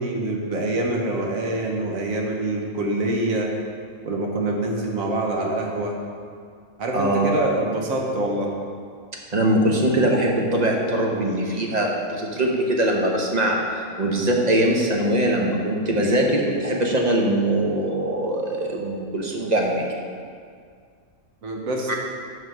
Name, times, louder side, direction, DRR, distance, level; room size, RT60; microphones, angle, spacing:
voice 1, 0.0-3.5 4.0-6.0 6.8-8.5 21.4-21.9, right 1 dB, 85° right, 0 dB, 1.5 m, -25 dB
voice 2, 6.9-7.3 9.3-19.9 21.9-22.0, right 1 dB, 35° right, -1 dB, 0.9 m, -22 dB
5.8 x 5.6 x 6.0 m, 2.1 s
omnidirectional pair, 1.4 m